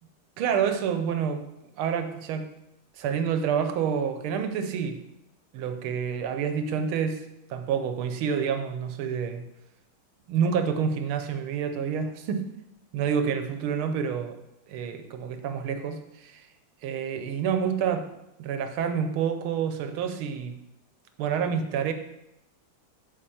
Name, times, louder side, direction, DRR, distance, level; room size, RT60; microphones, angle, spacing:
voice 1, 0.4-1.4 1.8-2.5 3.0-5.0 5.5-7.2 7.5-9.4 10.3-12.5 12.9-14.4 14.7-16.5 16.8-18.1 18.4-20.6 21.2-21.9, right 7 dB, 75° right, 8 dB, 1.5 m, -28 dB
7.6 x 4.2 x 5.6 m, 0.86 s
omnidirectional pair, 2.4 m